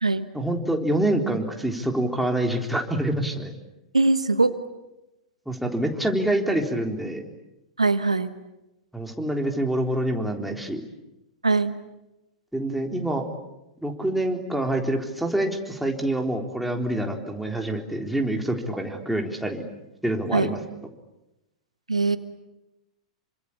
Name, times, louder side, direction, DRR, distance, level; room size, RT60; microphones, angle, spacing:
voice 1, 0.3-3.5 5.5-7.2 8.9-10.8 12.5-13.3 13.8-19.6 20.0-20.6, right 1 dB, ahead, 2 dB, 3.8 m, -26 dB
voice 2, 3.9-4.5 7.8-8.3 11.4-11.7 20.3-20.5 21.9-22.2, right 3 dB, 90° right, 11 dB, 1.4 m, -21 dB
27.5 x 25.0 x 8.6 m, 0.94 s
figure-of-eight pair, 95°, 3 cm